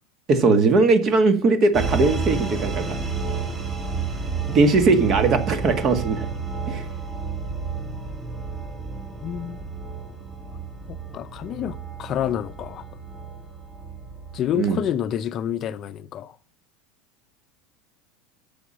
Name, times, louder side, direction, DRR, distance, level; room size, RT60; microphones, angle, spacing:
voice 1, 0.3-3.0 4.5-6.3 6.7-6.8 14.5-14.8, right 3 dB, 40° right, 1.8 m, -19 dB
sound 1, 1.7-14.7, right 4 dB, 25° right, 2.5 m, -31 dB
voice 2, 9.2-9.6 11.1-12.8 14.3-16.3, left 10 dB, 45° left, 0.5 m, -28 dB
7.1 x 5.9 x 7.3 m
supercardioid pair, 110°, 0 cm